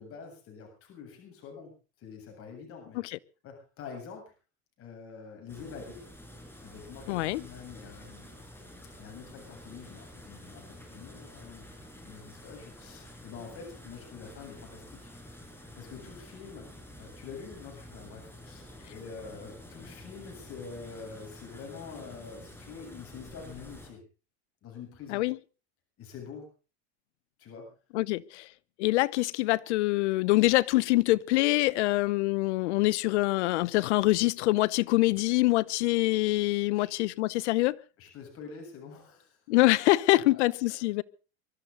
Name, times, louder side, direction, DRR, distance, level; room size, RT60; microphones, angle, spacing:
voice 1, 0.0-1.7 2.0-3.0 3.4-4.3 4.8-6.0 6.6-8.4 9.0-11.7 12.0-15.1 15.5-16.7 17.0-24.0 24.6-25.3 26.0-26.5 27.4-27.7 36.8-36.9 38.0-39.4 40.1-40.4, left 5 dB, 40° left, 7.7 m, -46 dB
sound 1, 5.5-23.9, left 1 dB, 5° left, 6.0 m, -49 dB
voice 2, 7.1-7.4 25.1-25.4 27.9-28.5 28.8-37.8 39.5-41.0, left 20 dB, 85° left, 1.0 m, -25 dB
24.0 x 13.5 x 3.9 m
supercardioid pair, 130°, 33 cm